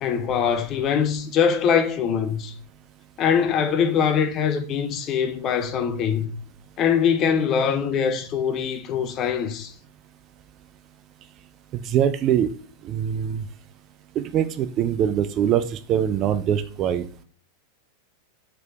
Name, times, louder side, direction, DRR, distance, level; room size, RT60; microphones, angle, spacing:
voice 1, 0.0-2.5 3.2-6.3 6.8-9.7, left 7 dB, 35° left, 0.7 m, -23 dB
voice 2, 11.7-12.5 12.8-13.4 14.2-17.0, right 9 dB, 35° right, 0.4 m, -23 dB
4.4 x 4.1 x 2.9 m
figure-of-eight pair, 90°, 0 cm